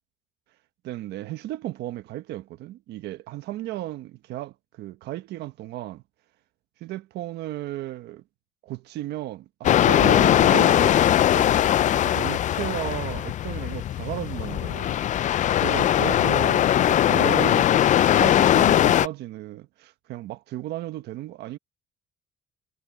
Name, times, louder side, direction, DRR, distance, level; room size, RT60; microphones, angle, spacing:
voice 1, 0.8-6.0 6.8-8.2 8.6-11.5 12.0-15.0 15.6-17.7 18.1-21.6, right 15 dB, 80° right, 1.3 m, -34 dB
sound 1, 9.6-19.1, left 11 dB, 45° left, 0.5 m, -20 dB
cardioid pair, 110°, 17 cm